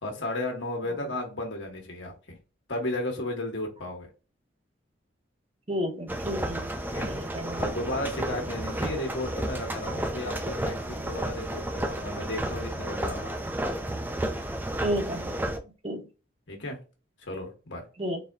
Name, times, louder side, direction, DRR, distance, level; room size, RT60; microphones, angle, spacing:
voice 1, 0.0-2.4 2.7-4.1 6.9-7.1 7.6-13.3 16.5-16.8 17.2-17.9, left 1 dB, 70° left, 2 dB, 1.3 m, -34 dB
voice 2, 5.7-7.7 14.8-15.5 15.8-16.1 18.0-18.2, equal, 30° right, 3 dB, 0.8 m, -32 dB
sound 1, 6.1-15.6, right 1 dB, 10° right, 0.4 m, -32 dB
4.1 x 3.5 x 2.7 m, 0.33 s
head